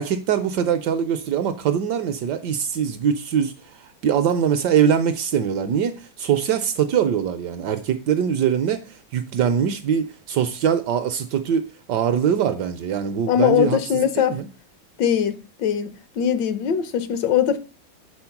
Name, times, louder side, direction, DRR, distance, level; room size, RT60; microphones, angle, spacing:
voice 1, 0.0-14.5, right 8 dB, 70° right, 1.0 m, -23 dB
voice 2, 13.3-14.4 15.0-15.9 16.2-17.6, left 9 dB, 70° left, 1.2 m, -21 dB
7.0 x 4.1 x 5.7 m
omnidirectional pair, 2.2 m